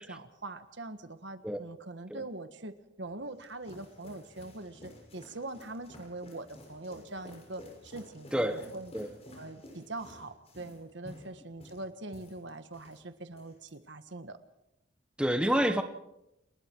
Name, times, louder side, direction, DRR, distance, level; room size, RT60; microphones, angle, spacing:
voice 1, 0.0-8.9 9.4-14.4, right 2 dB, 60° right, 10 dB, 1.5 m, -43 dB
sound 1, 3.1-13.0 13.3-13.7, left 1 dB, 30° left, 6.5 m, -52 dB
voice 2, 8.3-8.7 8.9-9.1 15.2-15.8, equal, 5° right, 7 dB, 1.2 m, -28 dB
29.0 x 20.5 x 4.7 m, 0.85 s
head